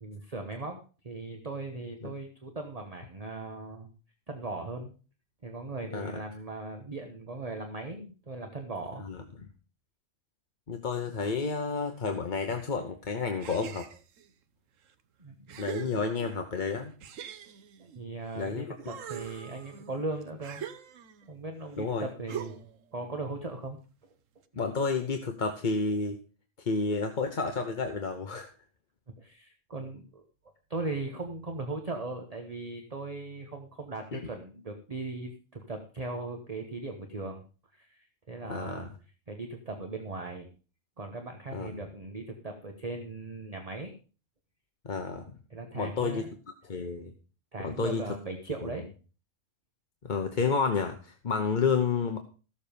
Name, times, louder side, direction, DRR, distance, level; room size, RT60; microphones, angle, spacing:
voice 1, 0.0-3.9 4.3-4.9 5.4-9.0 15.2-15.6 17.9-20.6 21.3-22.7 22.9-23.8 29.1-30.2 30.7-37.4 37.7-38.9 39.3-40.5 41.0-43.9 45.5-46.3 47.5-48.9, right 3 dB, 30° right, 4 dB, 1.2 m, -38 dB
voice 2, 10.7-13.9 15.6-16.9 18.3-18.7 21.8-22.1 24.6-26.2 26.6-28.5 34.1-34.2 38.5-38.9 41.5-41.8 44.8-45.3 45.7-46.2 46.6-47.1 47.6-48.0 48.6-48.7 50.0-52.2, left 4 dB, 40° left, 5 dB, 1.0 m, -30 dB
sound 1, 13.4-14.3 14.9-15.0 15.5-16.5 17.0-18.4 18.8-21.3 22.3-22.8, right 8 dB, 85° right, 1.3 m, -42 dB
14.5 x 7.2 x 5.1 m, 0.37 s
omnidirectional pair, 1.3 m